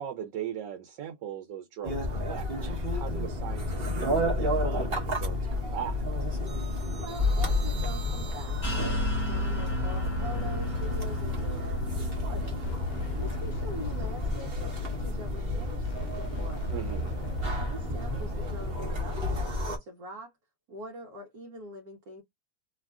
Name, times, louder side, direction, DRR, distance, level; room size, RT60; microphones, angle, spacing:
voice 1, 0.0-6.0 16.7-17.1, right 9 dB, 85° right, 1.3 m, -39 dB
sound 1, 1.8-19.8, left 1 dB, 40° right, 1.0 m, -31 dB
voice 2, 7.0-16.6 17.1-20.3 20.7-22.2, equal, 65° right, 1.3 m, -44 dB
sound 2, 7.4-18.9, equal, 70° left, 1.0 m, -41 dB
sound 3, 8.6-14.0, left 1 dB, 15° left, 1.2 m, -33 dB
3.2 x 2.4 x 2.3 m
omnidirectional pair, 1.8 m